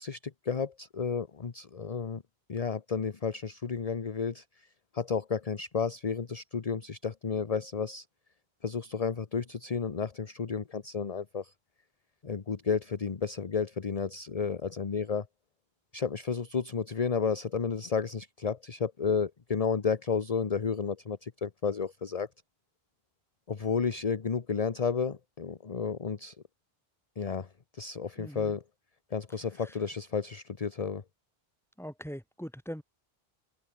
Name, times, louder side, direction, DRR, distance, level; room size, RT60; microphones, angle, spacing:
voice 1, 0.0-2.2 2.5-4.7 4.9-8.1 8.6-11.5 12.2-15.3 15.9-22.3 23.5-26.4 27.2-27.5 27.7-28.6 29.1-31.0, left 5 dB, 40° left, 1.0 m, -32 dB
voice 2, 28.2-28.5 31.8-32.8, equal, ahead, 3.8 m, -41 dB
open air
omnidirectional pair, 1.0 m